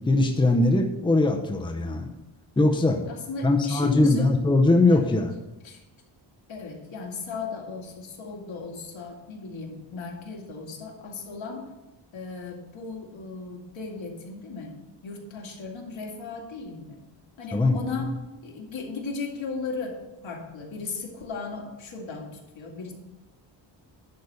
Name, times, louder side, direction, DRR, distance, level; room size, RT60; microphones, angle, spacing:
voice 1, 0.1-2.1 2.6-3.0 3.4-5.3 17.5-17.7, left 2 dB, 10° left, 3 dB, 0.7 m, -21 dB
voice 2, 1.8-2.1 3.1-4.3 4.9-5.2 5.6-5.8 6.5-11.7 12.1-14.8 15.0-17.0 17.4-18.2 18.4-22.9, left 4 dB, 75° left, -1 dB, 2.2 m, -36 dB
11.0 x 4.2 x 6.7 m, 0.99 s
wide cardioid pair, 145°, 46 cm